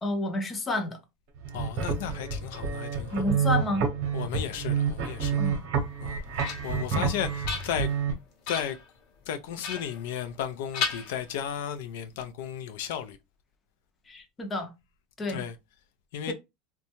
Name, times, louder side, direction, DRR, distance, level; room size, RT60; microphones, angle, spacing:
voice 1, 0.0-1.0 3.1-3.9 5.4-5.6 6.9-7.1 14.1-14.7 15.2-15.4 16.3-16.4, left 2 dB, 15° left, 0.5 m, -30 dB
sound 1, 1.4-8.1, right 6 dB, 55° right, 0.8 m, -29 dB
voice 2, 1.5-3.2 4.1-5.5 6.0-7.9 8.5-8.8 9.3-13.2 15.3-15.5 16.1-16.3, left 9 dB, 75° left, 0.3 m, -34 dB
sound 2, 5.9-6.9 7.3-8.1 8.4-8.9 9.6-10.5 10.7-11.7, left 5 dB, 55° left, 0.8 m, -35 dB
2.6 x 2.2 x 2.8 m
supercardioid pair, 160°, 0 cm